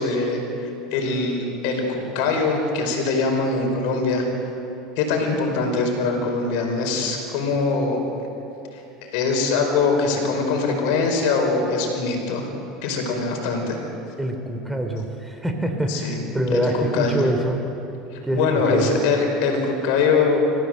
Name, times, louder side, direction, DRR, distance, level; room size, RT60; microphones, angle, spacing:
voice 1, 0.0-4.3 5.0-8.0 8.7-12.5 12.8-13.8 15.9-16.2 16.5-17.2 18.1-20.4, left 4 dB, 70° left, 3 dB, 5.0 m, -23 dB
voice 2, 14.2-17.6 18.2-19.0, right 1 dB, 5° right, 5 dB, 3.3 m, -25 dB
27.5 x 15.5 x 7.9 m, 2.9 s
hypercardioid pair, 85°, 0 cm